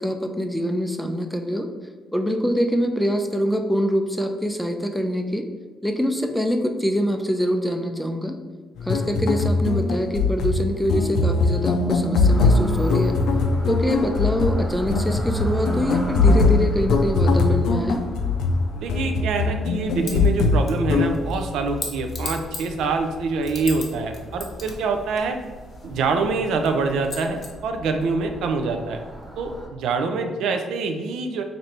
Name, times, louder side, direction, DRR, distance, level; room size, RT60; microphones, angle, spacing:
voice 1, 0.0-1.7 2.1-5.4 5.8-8.4 8.8-13.2 13.7-18.0, equal, ahead, 5 dB, 0.4 m, -24 dB
sound 1, 8.8-21.1, left 3 dB, 85° left, 0.4 m, -21 dB
sound 2, 12.2-29.7, right 1 dB, 45° right, 1.0 m, -36 dB
voice 2, 18.8-25.4 25.8-29.0 29.4-31.4, right 4 dB, 85° right, 5 dB, 0.4 m, -25 dB
sound 3, 20.0-20.3 20.7-23.9 24.1-26.1 26.6-26.7 27.0-27.5, left 3 dB, 45° left, 0.8 m, -36 dB
3.2 x 2.6 x 4.2 m, 1.3 s
cardioid pair, 90°, 0 cm